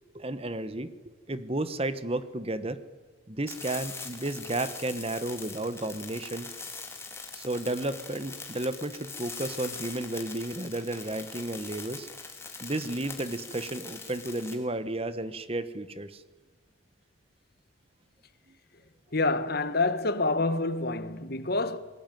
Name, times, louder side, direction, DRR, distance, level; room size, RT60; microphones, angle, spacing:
voice 1, 0.1-0.9 1.3-2.8 3.3-6.5 7.3-12.1 12.6-16.2, right 1 dB, 30° right, 1.2 m, -32 dB
sound 1, 3.5-14.5, left 4 dB, 15° left, 3.4 m, -42 dB
voice 2, 19.1-21.8, left 3 dB, 50° left, 1.5 m, -27 dB
28.0 x 21.0 x 9.3 m
head